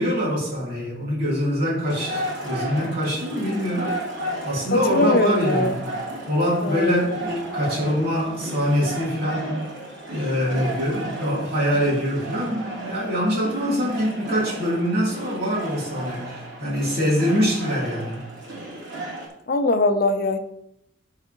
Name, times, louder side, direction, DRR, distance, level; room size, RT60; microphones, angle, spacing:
voice 1, 0.0-3.9 4.4-5.7 6.3-9.6 10.1-18.2, equal, 50° right, -8 dB, 3.1 m, -24 dB
sound 1, 1.9-19.3, right 1 dB, 75° right, 2.9 m, -34 dB
voice 2, 4.7-5.7 6.6-7.2 19.5-20.4, left 2 dB, 50° left, 8 dB, 0.7 m, -21 dB
14.0 x 4.7 x 3.0 m, 0.79 s
head